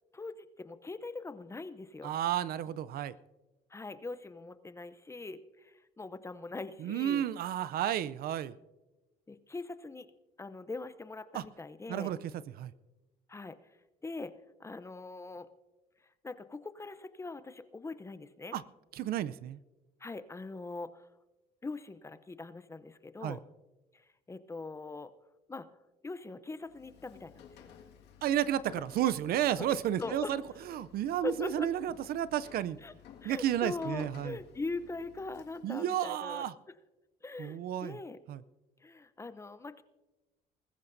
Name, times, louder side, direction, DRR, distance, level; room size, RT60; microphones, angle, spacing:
voice 1, 0.1-2.1 3.7-7.3 9.3-10.1 10.4-12.1 13.3-13.6 14.0-14.3 14.6-15.5 16.2-18.6 20.0-21.1 21.6-23.4 23.9-25.1 25.5-25.7 26.0-27.7 29.6-30.4 31.2-31.7 32.8-32.9 33.2-36.7 37.2-38.2 38.8-39.8, left 3 dB, 15° left, 13 dB, 0.6 m, -42 dB
voice 2, 2.0-3.1 6.8-8.5 11.3-11.4 11.9-12.2 12.6-12.7 18.5-18.6 19.0-19.6 23.2-23.4 28.2-30.4 30.7-32.8 33.2-34.3 35.6-36.5 37.4-38.0 38.3-38.4, right 11 dB, 65° right, 16 dB, 0.5 m, -32 dB
Rain, 26.6-35.9, left 8 dB, 85° left, 1.9 m, -55 dB
20.5 x 14.0 x 2.6 m, 1.1 s
cardioid pair, 110°, 17 cm